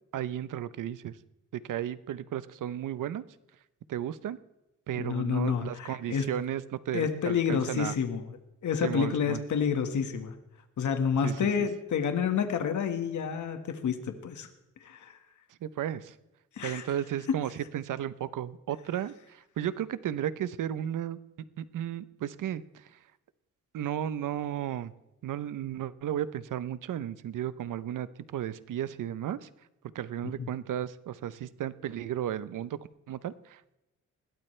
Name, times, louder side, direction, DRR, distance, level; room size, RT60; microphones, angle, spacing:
voice 1, 0.1-1.2 1.6-3.2 3.9-4.4 4.9-7.9 8.8-9.4 11.2-11.5 15.6-16.1 16.6-21.2 21.6-23.0 23.7-24.9 25.2-28.1 28.3-29.5 29.9-32.8 33.1-33.8, right 10 dB, 80° right, 15 dB, 0.8 m, -34 dB
voice 2, 5.0-6.3 6.9-8.3 8.6-10.3 10.8-14.5 14.8-15.2 16.6-16.8 30.4-30.5, left 7 dB, 70° left, 7 dB, 1.7 m, -29 dB
21.0 x 16.5 x 3.3 m, 0.93 s
cardioid pair, 120°, 31 cm